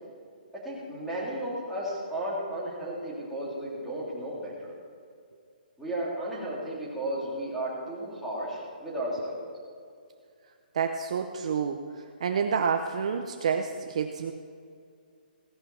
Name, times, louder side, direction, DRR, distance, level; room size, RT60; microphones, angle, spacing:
voice 1, 0.5-4.7 5.8-9.4, right 1 dB, ahead, -9 dB, 2.2 m, -34 dB
voice 2, 10.7-11.8 12.2-14.3, right 6 dB, 40° right, 5 dB, 0.7 m, -28 dB
16.5 x 11.0 x 4.2 m, 2.2 s
hypercardioid pair, 175°, 5 cm